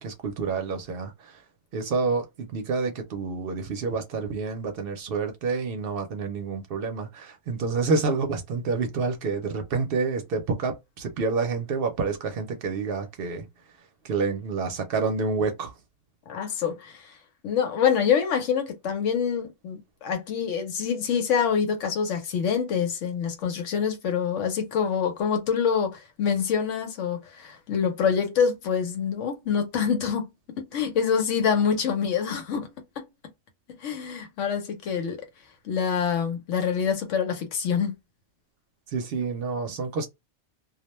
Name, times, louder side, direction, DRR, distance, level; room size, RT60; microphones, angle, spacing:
voice 1, 0.0-1.4 1.7-13.5 14.0-15.7 38.9-40.1, right 4 dB, 60° right, 0.7 m, -28 dB
voice 2, 16.3-17.1 17.4-30.3 30.5-32.7 33.0-33.1 33.8-35.3 35.6-37.9, left 7 dB, 90° left, 1.1 m, -26 dB
2.3 x 2.1 x 2.9 m
omnidirectional pair, 1.2 m